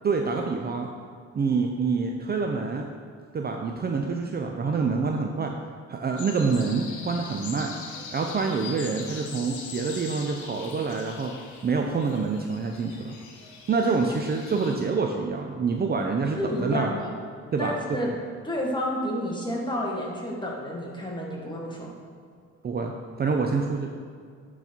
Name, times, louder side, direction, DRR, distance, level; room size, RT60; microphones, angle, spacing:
voice 1, 0.0-0.9 1.3-2.9 3.3-5.5 5.9-7.7 8.1-11.3 11.6-13.2 13.7-16.9 17.5-18.0 22.6-22.9 23.2-23.9, right 4 dB, 35° right, 3 dB, 0.5 m, -26 dB
sound 1, 6.2-14.8, left 5 dB, 75° left, 0.9 m, -42 dB
voice 2, 16.4-17.1 17.6-18.1 18.4-22.0, left 1 dB, 15° left, -2 dB, 1.6 m, -30 dB
8.1 x 4.0 x 4.4 m, 2.2 s
cardioid pair, 90°, 30 cm